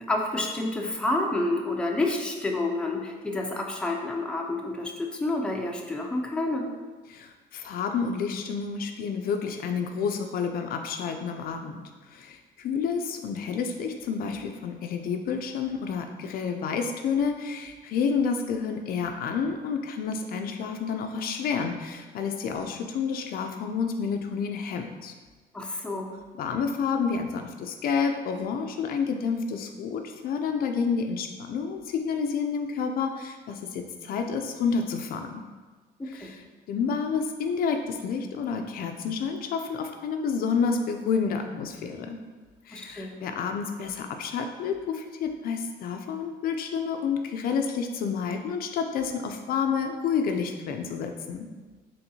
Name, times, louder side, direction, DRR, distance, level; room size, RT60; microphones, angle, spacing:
voice 1, 0.1-6.7 25.5-26.1 36.0-36.4 42.7-43.2, left 2 dB, 5° left, 0 dB, 0.5 m, -29 dB
voice 2, 7.1-11.8 12.1-25.1 26.4-35.4 36.1-42.2 42.7-51.5, left 6 dB, 60° left, 5 dB, 0.4 m, -29 dB
4.4 x 3.1 x 2.7 m, 1.3 s
cardioid pair, 110°, 17 cm